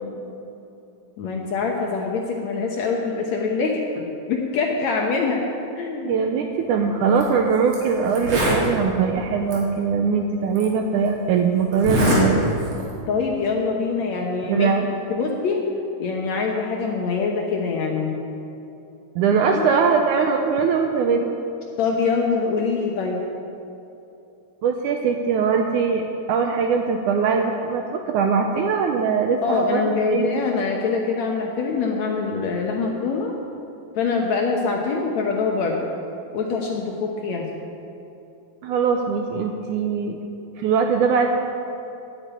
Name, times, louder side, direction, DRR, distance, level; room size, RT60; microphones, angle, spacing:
voice 1, 1.2-5.5 5.7-6.1 13.1-14.7 15.1-15.6 16.0-18.2 19.5-19.7 21.8-23.2 29.4-33.3 34.0-35.9 36.3-37.5, left 4 dB, 65° left, 0 dB, 1.8 m, -24 dB
voice 2, 6.1-12.4 14.4-14.9 19.2-21.4 24.6-29.8 30.1-30.4 38.6-40.2 40.6-41.3, right 5 dB, 80° right, 4 dB, 1.8 m, -21 dB
Zipper (clothing), 7.1-7.2 7.7-7.8 8.1-8.7 9.5-9.6 10.6-10.7 11.7-12.2 12.6-12.9, equal, 45° right, 3.6 m, -22 dB
10.5 x 9.5 x 9.0 m, 2.8 s
omnidirectional pair, 4.2 m